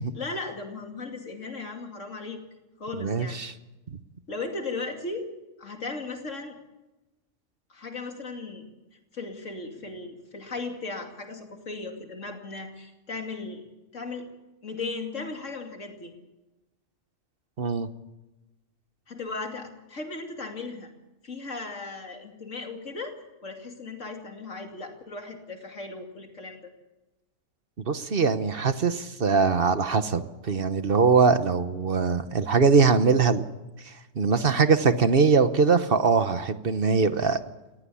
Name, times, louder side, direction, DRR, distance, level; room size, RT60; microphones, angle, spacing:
voice 1, 0.1-2.4 2.8-3.4 4.3-5.3 5.6-6.6 7.7-8.7 9.1-13.6 13.9-14.3 14.6-16.1 19.1-20.9 21.2-23.1 23.4-26.7, left 3 dB, 75° left, 4 dB, 3.0 m, -36 dB
voice 2, 3.0-3.5 3.9-4.0 17.6-17.9 27.9-33.4 33.8-37.4, right 5 dB, 50° right, 11 dB, 1.1 m, -22 dB
19.5 x 16.0 x 8.5 m, 1.0 s
omnidirectional pair, 1.3 m